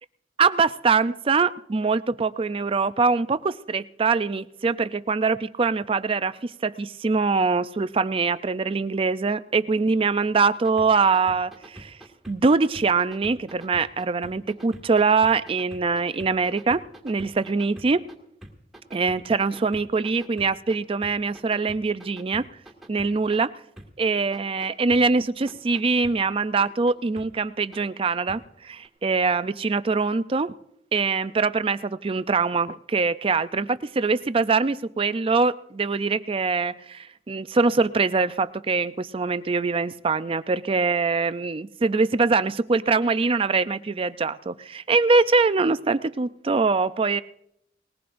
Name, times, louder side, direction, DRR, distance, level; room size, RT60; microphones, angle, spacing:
voice 1, 0.4-12.0 12.3-18.0 18.9-22.5 22.9-23.5 24.0-30.5 30.9-47.2, right 4 dB, 30° right, 13 dB, 0.4 m, -23 dB
sound 1, 10.5-18.1 18.4-20.8 21.0-23.4 23.8-23.9 24.3-25.0 25.5-26.1 26.6-27.3 27.7-27.8 28.3-28.4 28.8-28.9, right 1 dB, 5° right, 1.9 m, -44 dB
20.0 x 19.0 x 2.6 m, 0.75 s
head